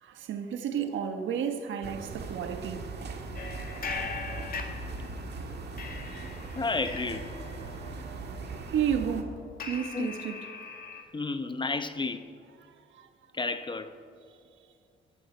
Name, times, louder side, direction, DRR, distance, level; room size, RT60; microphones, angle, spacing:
voice 1, 0.0-3.0 3.6-3.7 6.1-6.2 8.7-9.4 9.7-10.4 12.6-13.1, right 8 dB, 75° right, 1.3 m, -32 dB
sound 1, 1.8-9.2, right 3 dB, 55° right, 1.9 m, -39 dB
sound 2, 3.3-5.3 5.8-11.0, left 4 dB, 45° left, 2.1 m, -41 dB
voice 2, 6.6-7.3 9.9-10.1 11.1-12.3 13.3-13.9, left 3 dB, 25° left, 0.9 m, -31 dB
20.0 x 14.0 x 4.5 m
cardioid pair, 90°, 20 cm